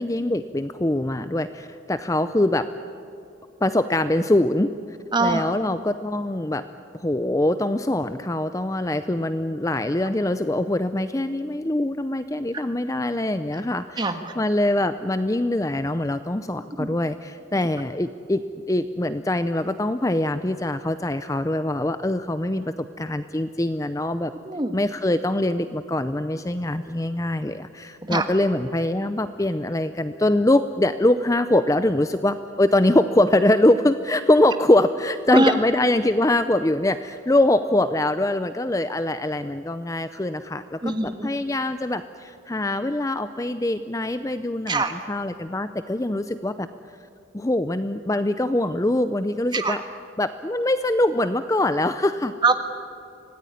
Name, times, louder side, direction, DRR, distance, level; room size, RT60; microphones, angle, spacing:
voice 1, 0.0-2.7 3.6-4.7 5.2-6.6 6.9-18.4 18.7-24.3 24.7-46.7 47.3-49.8 50.2-52.3, left 1 dB, 15° left, 11 dB, 0.5 m, -23 dB
voice 2, 5.1-5.4 14.0-14.3 16.8-16.9 24.4-24.7 28.1-28.2 35.3-35.5 40.8-41.3 44.7-44.9 49.5-49.8 52.4-52.5, right 3 dB, 25° right, 6 dB, 1.7 m, -22 dB
25.5 x 18.0 x 10.0 m, 2.6 s
head